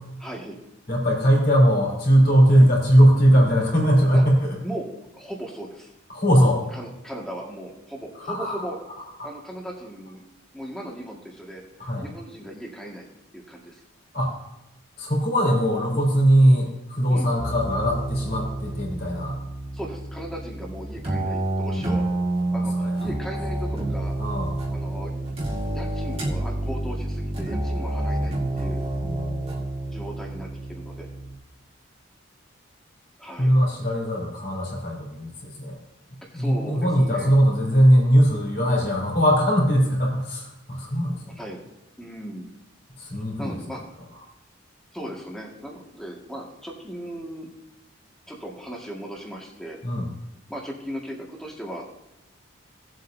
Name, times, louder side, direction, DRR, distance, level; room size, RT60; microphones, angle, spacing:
voice 1, 0.2-0.6 4.1-4.2 4.6-4.8 5.1-5.9 6.7-8.8 9.2-10.2 10.5-13.1 13.3-13.8 17.0-17.3 19.7-22.1 22.5-24.1 24.7-25.2 25.7-28.8 29.9-31.1 33.2-33.6 36.3-37.3 41.4-41.6 42.0-42.5 43.4-43.8 44.9-47.5 48.3-49.8 50.5-51.9, right 1 dB, ahead, -2 dB, 1.9 m, -37 dB
voice 2, 0.9-4.5 6.1-6.6 8.3-8.7 9.2-9.3 11.8-12.1 14.1-14.3 15.0-19.4 22.5-22.9 24.2-24.5 29.0-29.6 33.4-35.8 36.3-41.3 43.0-43.8 49.8-50.1, equal, 45° left, -2 dB, 3.5 m, -20 dB
sound 1, 17.4-31.3, right 1 dB, 30° right, 2.0 m, -29 dB
18.0 x 7.7 x 2.7 m, 0.93 s
head